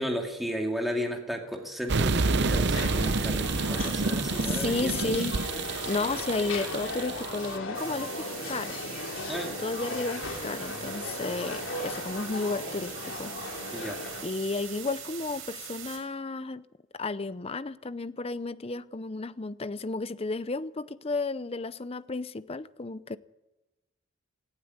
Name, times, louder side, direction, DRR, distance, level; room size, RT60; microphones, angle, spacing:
voice 1, 0.0-5.1 9.3-9.6 13.7-14.0, equal, ahead, 2.5 m, -34 dB
sound 1, 1.9-7.5, right 3 dB, 55° right, 0.8 m, -29 dB
sound 2, 2.7-14.2, left 2 dB, 65° left, 3.5 m, -37 dB
voice 2, 4.4-5.4 5.9-8.8 9.6-13.7 14.2-16.6 16.9-23.2, left 3 dB, 30° left, 0.6 m, -33 dB
sound 3, 7.7-16.0, right 8 dB, 80° right, 5.7 m, -42 dB
17.5 x 15.5 x 9.7 m
head